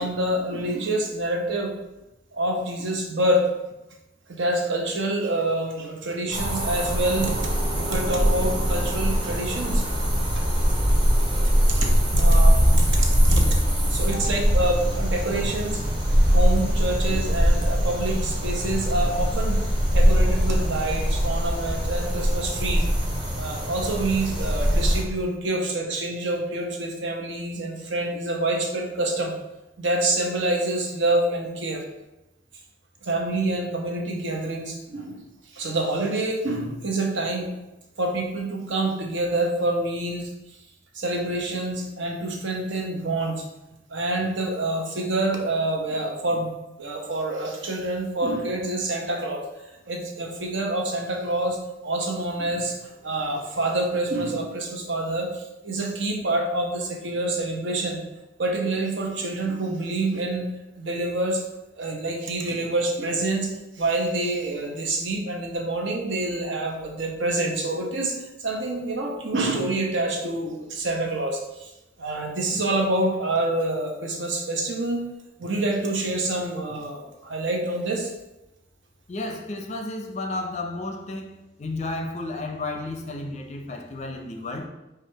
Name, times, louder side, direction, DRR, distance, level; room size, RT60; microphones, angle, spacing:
voice 1, 0.0-1.7 2.3-3.5 4.3-9.9 11.7-13.6 13.9-15.8 16.3-19.6 19.9-22.9 23.3-29.3 29.8-31.8 33.0-35.2 35.5-37.5 38.0-40.3 40.9-43.5 43.9-58.0 58.4-60.5 60.8-61.4 61.7-71.7 72.0-75.1 75.4-78.1, right 2 dB, 75° right, 1 dB, 0.8 m, -27 dB
sound 1, 6.3-25.0, equal, 25° right, 0.8 m, -22 dB
voice 2, 79.1-84.7, left 2 dB, 35° left, 4 dB, 0.4 m, -32 dB
4.6 x 2.4 x 4.5 m, 0.97 s
head